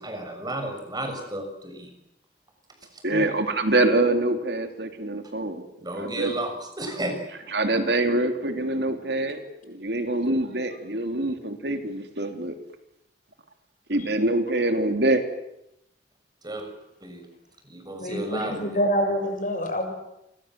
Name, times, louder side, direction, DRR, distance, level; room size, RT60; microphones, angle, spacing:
voice 1, 0.0-1.9 2.9-3.0 5.8-7.2 16.4-16.7 17.0-17.2 17.6-18.7, right 1 dB, 25° right, 5 dB, 6.5 m, -33 dB
voice 2, 3.0-5.6 5.9-6.3 7.5-12.6 13.9-15.2, right 2 dB, 65° right, 6 dB, 3.2 m, -25 dB
voice 3, 18.0-19.9, equal, 50° left, 5 dB, 7.1 m, -26 dB
29.5 x 25.0 x 7.7 m, 0.84 s
head